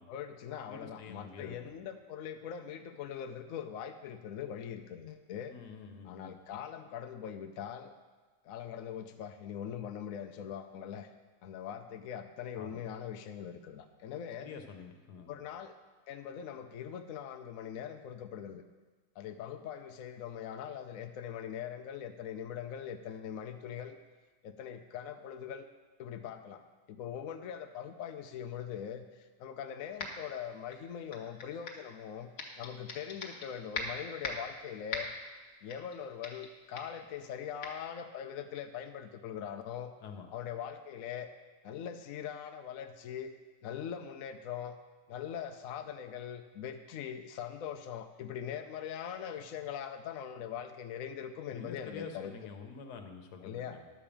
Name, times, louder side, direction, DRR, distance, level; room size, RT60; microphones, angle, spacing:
voice 1, 0.1-5.5 6.0-7.9 8.4-11.1 11.4-14.5 15.3-15.7 16.1-18.6 19.2-24.0 24.4-25.7 26.0-26.6 26.9-29.0 29.4-32.3 32.6-35.1 35.6-39.9 40.3-41.3 41.6-43.3 43.6-44.8 45.1-52.3 53.4-53.8, left 8 dB, 65° left, 6 dB, 1.0 m, -41 dB
voice 2, 0.7-1.7 5.5-6.3 12.5-12.8 14.4-15.4 40.0-40.3 51.5-53.8, left 5 dB, 85° left, 5 dB, 1.5 m, -47 dB
sound 1, 30.0-30.3 30.7-31.9 32.4-33.5 33.7-34.5 34.9-35.3 35.7-36.0 36.2-36.5 36.8-37.0 37.6-37.7, left 3 dB, 50° left, 1.4 m, -40 dB
11.0 x 5.1 x 7.2 m, 1.3 s
omnidirectional pair, 1.7 m